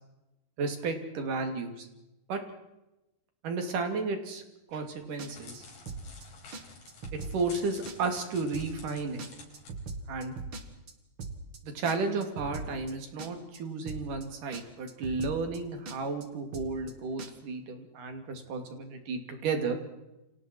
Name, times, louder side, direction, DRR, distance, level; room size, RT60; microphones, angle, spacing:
voice 1, 0.6-1.9 2.3-2.4 3.4-4.4 4.7-5.6 7.1-9.2 10.1-10.3 11.6-19.8, right 4 dB, 65° right, 6 dB, 4.2 m, -33 dB
Crackle, 4.7-9.7, left 3 dB, 70° left, 6.2 m, -51 dB
sound 1, 5.2-5.6 5.9-6.3 6.5-6.6 6.9-7.6 7.9-8.3 8.5-8.9 9.2-10.9 11.2-11.6 11.9-12.9 13.2-13.6 13.9-14.3 14.5-14.6 14.9-15.6 15.9-16.3 16.5-16.9 17.2-17.3, right 4 dB, 40° right, 2.4 m, -40 dB
29.5 x 25.5 x 4.6 m, 0.95 s
omnidirectional pair, 4.1 m